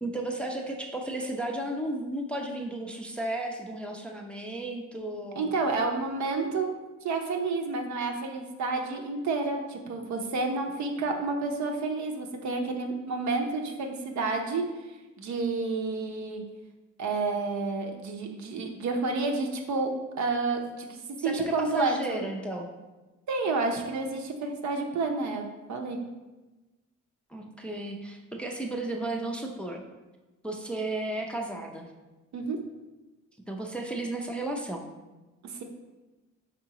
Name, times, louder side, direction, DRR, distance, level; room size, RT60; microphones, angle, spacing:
voice 1, 0.0-5.5 21.2-22.7 27.3-29.8 30.4-31.9 33.5-34.9, right 1 dB, 5° left, 1 dB, 0.5 m, -34 dB
voice 2, 5.4-6.7 7.0-14.6 15.2-16.4 17.0-19.9 20.2-22.3 23.3-25.4 25.7-26.0 32.3-32.6 35.4-35.6, right 3 dB, 65° right, 3 dB, 0.7 m, -30 dB
4.9 x 3.6 x 2.9 m, 1.1 s
cardioid pair, 90°, 30 cm